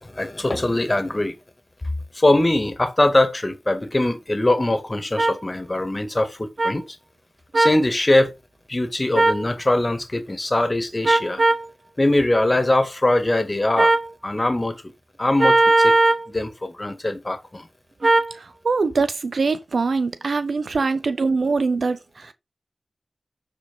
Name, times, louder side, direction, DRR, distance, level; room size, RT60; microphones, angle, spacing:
voice 1, 0.0-1.4 2.1-7.0 7.5-8.3 8.7-11.4 12.0-13.9 14.2-14.8 15.2-15.9 16.3-17.7, left 1 dB, 35° left, 2.0 m, -22 dB
sound 1, 5.2-5.3 6.6-6.7 7.5-7.8 9.1-9.4 11.0-11.6 13.8-14.1 15.4-16.2 18.0-18.3, right 2 dB, 65° right, 1.5 m, -17 dB
voice 2, 18.4-22.3, right 4 dB, 85° right, 1.0 m, -23 dB
11.5 x 5.0 x 5.3 m
cardioid pair, 50°, 0 cm